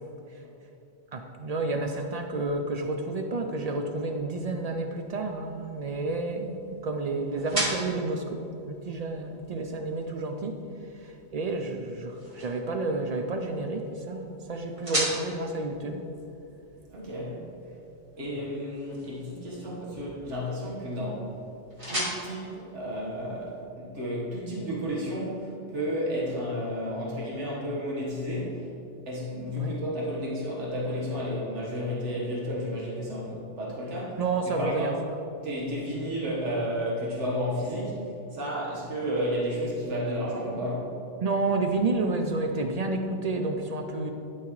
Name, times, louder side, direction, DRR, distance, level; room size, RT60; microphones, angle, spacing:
voice 1, 1.1-8.4 8.7-10.6 11.0-16.0 29.6-29.7 34.2-34.9 41.2-44.1, right 3 dB, 60° right, 4 dB, 0.4 m, -30 dB
sound 1, 4.8-23.6, equal, 30° right, 1.6 m, -39 dB
voice 2, 16.9-17.4 18.2-21.3 21.9-28.6 29.1-34.9 35.4-40.9, equal, 80° right, -5 dB, 1.7 m, -32 dB
12.0 x 4.6 x 3.1 m, 2.8 s
omnidirectional pair, 1.2 m